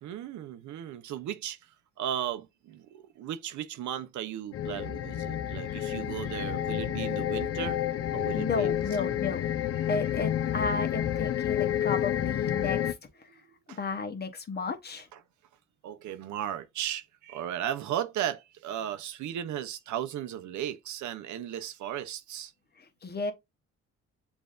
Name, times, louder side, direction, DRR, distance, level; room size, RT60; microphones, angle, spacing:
voice 1, 0.0-1.7 2.0-7.8 8.1-9.1 13.4-13.8 15.1-15.2 15.8-22.5, right 10 dB, 75° right, 0.6 m, -36 dB
sound 1, 4.5-12.9, left 11 dB, 50° left, 0.5 m, -30 dB
voice 2, 8.3-9.5 9.9-13.3 13.8-15.1 22.8-23.3, left 4 dB, 35° left, 0.9 m, -33 dB
6.9 x 2.6 x 2.4 m
cardioid pair, 90°, 30 cm